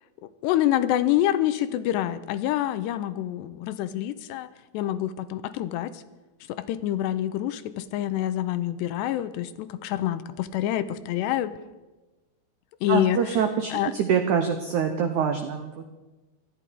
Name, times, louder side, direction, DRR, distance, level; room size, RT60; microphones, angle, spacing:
voice 1, 0.2-4.5 4.7-6.0 6.5-11.6 12.8-13.4 13.7-13.9, left 12 dB, 85° left, 13 dB, 2.9 m, -27 dB
voice 2, 12.9-15.9, right 7 dB, 90° right, 7 dB, 1.7 m, -25 dB
18.5 x 13.0 x 5.3 m, 1.1 s
omnidirectional pair, 4.9 m